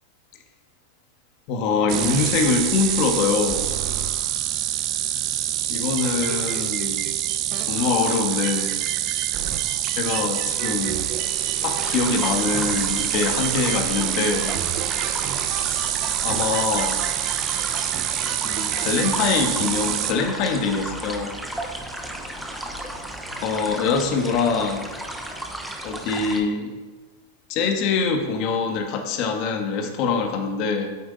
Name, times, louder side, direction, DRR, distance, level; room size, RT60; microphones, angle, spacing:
voice 1, 1.5-3.6 5.7-7.1 7.6-8.7 10.0-11.0 11.6-14.5 15.6-15.9 16.2-17.0 18.4-21.3 23.3-24.9 25.8-26.7 27.5-30.9, left 5 dB, 45° left, 4 dB, 1.4 m, -24 dB
sound 1, 1.9-20.1, right 11 dB, 40° right, 0.7 m, -25 dB
sound 2, 11.7-26.4, right 1 dB, 5° right, 1.0 m, -34 dB
8.9 x 7.9 x 4.0 m, 1.3 s
supercardioid pair, 140°, 0 cm